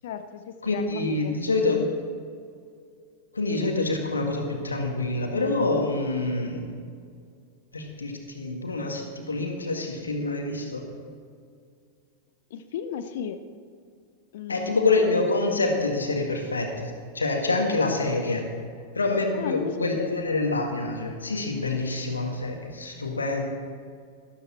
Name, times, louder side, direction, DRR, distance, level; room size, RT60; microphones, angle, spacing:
voice 1, 0.0-1.9 12.5-13.4 14.3-14.8 19.3-20.3, left 8 dB, 55° left, 10 dB, 0.7 m, -35 dB
voice 2, 0.6-1.9 3.3-6.8 7.7-10.9 14.5-18.5 18.9-23.5, left 3 dB, 75° left, 3 dB, 1.8 m, -26 dB
12.5 x 12.5 x 4.3 m, 2.2 s
figure-of-eight pair, 90°, 0 cm